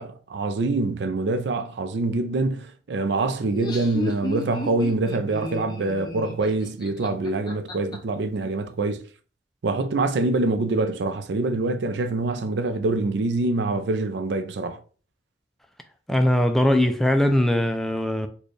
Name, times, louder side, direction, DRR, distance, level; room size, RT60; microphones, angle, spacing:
voice 1, 0.0-9.0 9.6-14.8, right 3 dB, 75° right, 0.4 m, -25 dB
Laughter, 3.4-8.0, left 1 dB, 25° left, 0.7 m, -33 dB
voice 2, 16.1-18.3, left 1 dB, ahead, 0.3 m, -20 dB
3.3 x 2.3 x 4.0 m
head